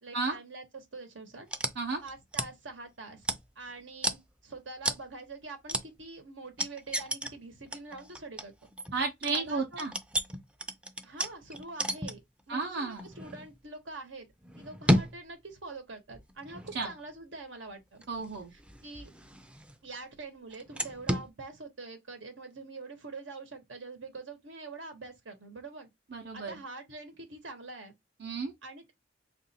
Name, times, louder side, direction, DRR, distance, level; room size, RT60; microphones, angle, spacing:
voice 1, 0.0-1.5 2.0-3.3 3.6-8.5 9.3-9.9 11.0-12.2 12.5-14.3 14.5-18.0 18.5-19.1 19.8-25.9 26.3-27.9 28.6-28.9, right 3 dB, 85° right, 1.1 m, -45 dB
sound 1, 1.5-2.5 3.2-3.7 4.0-4.2 4.8-5.1 5.7-5.9 6.6-7.3 7.7-12.4 12.9-13.5 14.4-15.2 16.1-17.0 18.0-19.9 20.5-21.3, equal, 5° right, 0.4 m, -33 dB
voice 2, 8.9-9.9 12.5-13.1 16.7-16.9 18.1-18.5 26.1-26.5 28.2-28.5, right 4 dB, 65° right, 0.7 m, -32 dB
3.0 x 2.5 x 4.1 m
head